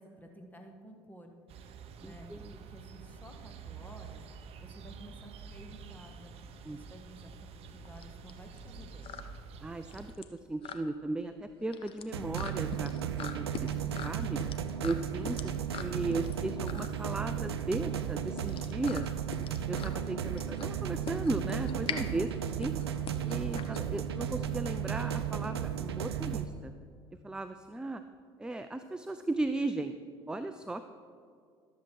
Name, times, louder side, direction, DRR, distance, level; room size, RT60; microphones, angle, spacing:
voice 1, 0.0-1.3 2.0-4.2 4.6-6.4 6.7-7.3 7.7-9.2, equal, 15° left, 3 dB, 1.6 m, -52 dB
sound 1, 1.5-10.2, right 6 dB, 50° right, 0.7 m, -48 dB
voice 2, 2.0-2.5 6.7-6.8 9.6-12.9 13.2-14.4 14.8-15.5 15.8-19.1 19.7-22.8 23.2-26.7 27.2-28.0 28.4-29.9 30.3-30.8, right 2 dB, 5° right, 10 dB, 0.4 m, -36 dB
sound 2, 6.6-24.4, left 7 dB, 45° left, 0.8 m, -44 dB
sound 3, 12.1-26.4, right 9 dB, 90° right, 0.4 m, -34 dB
12.5 x 7.4 x 4.7 m, 2.2 s
hypercardioid pair, 70°, 13 cm